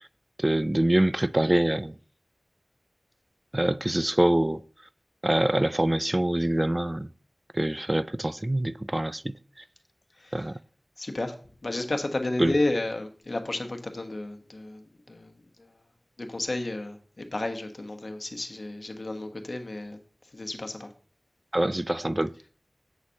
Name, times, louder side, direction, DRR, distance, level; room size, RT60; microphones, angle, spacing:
voice 1, 0.4-2.0 3.5-4.6 5.2-7.1 7.5-9.3 10.3-10.6 12.4-12.6 21.5-22.5, right 1 dB, 30° right, 0.3 m, -25 dB
voice 2, 11.0-11.3 11.6-15.3 15.6-15.7 16.2-20.0 20.3-20.9, left 2 dB, 70° left, 1.2 m, -32 dB
8.1 x 4.2 x 6.3 m
wide cardioid pair, 45°, 0 cm